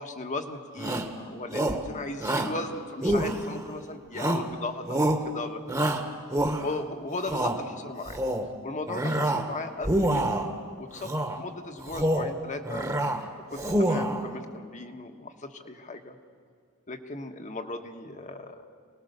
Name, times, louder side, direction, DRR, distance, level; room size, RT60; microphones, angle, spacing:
voice 1, 0.0-5.9 6.6-8.2 8.6-10.4 10.8-11.1 11.4-12.9 13.5-16.2 16.9-18.6, left 2 dB, 35° left, 6 dB, 1.3 m, -37 dB
Shout, 0.8-1.1 1.5-1.9 2.2-2.6 3.0-3.7 4.2-4.5 4.9-5.3 5.7-6.8 7.2-7.6 8.0-8.5 8.9-9.5 9.8-10.5 11.0-11.4 11.8-12.3 12.7-13.2 13.5-14.2, right 1 dB, 15° right, 1.4 m, -27 dB
25.0 x 19.0 x 6.7 m, 2.2 s
head